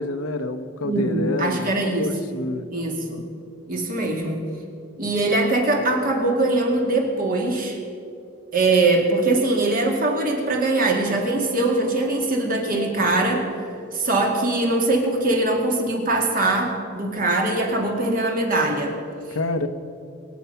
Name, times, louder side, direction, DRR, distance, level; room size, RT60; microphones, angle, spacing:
voice 1, 0.0-2.7 19.3-19.7, left 2 dB, 90° left, 9 dB, 1.0 m, -28 dB
voice 2, 0.8-2.3 2.7-3.2 3.7-4.4 5.0-7.8 8.5-13.5 13.9-19.0, right 2 dB, 40° right, 1 dB, 2.3 m, -22 dB
24.5 x 8.3 x 5.7 m, 2.5 s
head